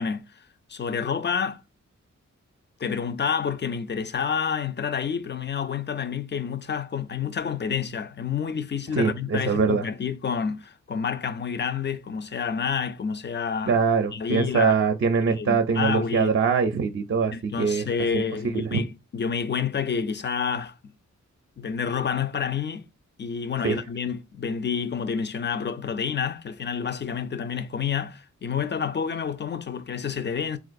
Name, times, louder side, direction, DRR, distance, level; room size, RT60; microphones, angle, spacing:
voice 1, 0.0-1.6 2.8-13.7 14.1-14.7 15.3-16.3 17.3-20.8 21.6-22.8 23.2-30.6, left 6 dB, 35° left, 0.4 m, -29 dB
voice 2, 9.0-9.8 13.7-17.9 18.1-18.2 18.5-18.8 23.6-23.8, right 5 dB, 45° right, 0.5 m, -23 dB
3.7 x 2.4 x 2.5 m
cardioid pair, 50°, 30 cm